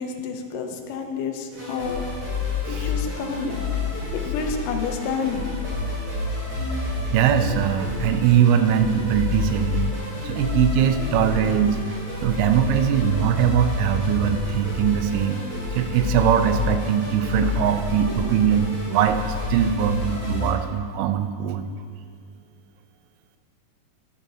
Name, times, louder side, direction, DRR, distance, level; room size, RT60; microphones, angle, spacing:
voice 1, 0.0-2.0 2.7-3.6 4.1-5.5, left 5 dB, 80° left, 4 dB, 2.4 m, -29 dB
sound 1, 1.5-20.5, left 4 dB, 50° right, 3.4 m, -29 dB
voice 2, 7.1-10.0 10.2-15.4 15.7-21.7, right 9 dB, 85° right, 8 dB, 2.2 m, -21 dB
12.0 x 7.0 x 3.8 m, 2.1 s
omnidirectional pair, 3.9 m